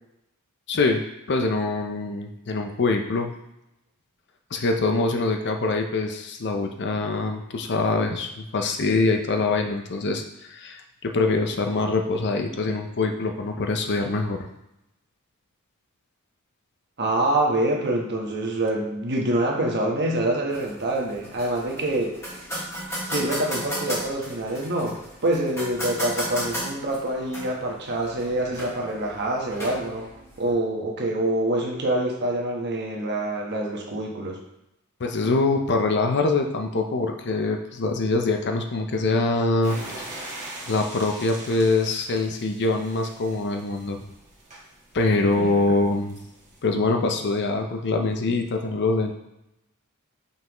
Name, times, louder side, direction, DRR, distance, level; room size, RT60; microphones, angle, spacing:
voice 1, 0.7-1.0 1.3-3.3 4.5-10.2 10.5-14.5 35.0-40.0 40.7-44.0 44.9-46.2 46.6-49.1, left 3 dB, 50° left, 4 dB, 0.6 m, -24 dB
voice 2, 17.0-22.2 23.1-30.1 30.4-34.4 45.4-45.8, right 1 dB, 50° right, 0 dB, 1.2 m, -26 dB
sound 1, 20.5-30.5, equal, 15° left, 1.9 m, -35 dB
sound 2, 39.6-46.6, right 2 dB, 30° right, 1.6 m, -42 dB
5.6 x 5.5 x 3.0 m, 0.87 s
head